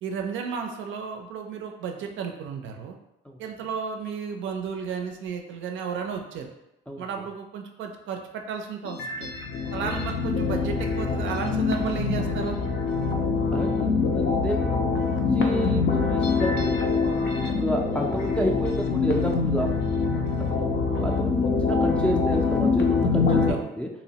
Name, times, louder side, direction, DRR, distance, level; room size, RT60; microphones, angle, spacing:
voice 1, 0.0-3.0 3.4-6.5 7.0-9.3 9.7-12.6 23.3-23.6, right 6 dB, 75° right, 4 dB, 0.4 m, -33 dB
sound 1, 8.9-23.5, left 4 dB, 65° left, 0.5 m, -24 dB
voice 2, 13.5-15.0 15.3-16.9 17.5-19.7 20.4-23.9, equal, 5° left, -1 dB, 0.3 m, -30 dB
2.8 x 2.0 x 2.7 m, 0.89 s
cardioid pair, 90°, 20 cm